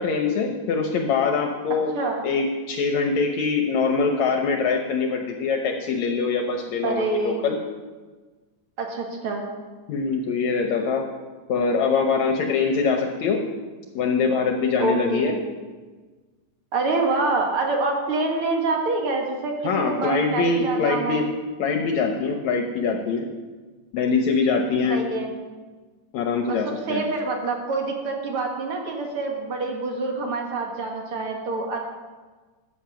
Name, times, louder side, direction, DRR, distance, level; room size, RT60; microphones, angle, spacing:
voice 1, 0.0-2.0 2.2-7.6 9.9-11.0 11.5-13.4 14.0-15.3 19.6-21.3 21.6-23.2 23.9-25.0 26.1-27.0, left 4 dB, 70° left, 3 dB, 1.9 m, -23 dB
voice 2, 6.8-7.5 8.8-9.4 14.8-15.3 16.7-21.3 24.9-25.3 26.5-26.6 26.9-31.8, right 3 dB, 50° right, 1 dB, 2.0 m, -26 dB
13.5 x 7.5 x 5.8 m, 1.4 s
omnidirectional pair, 3.8 m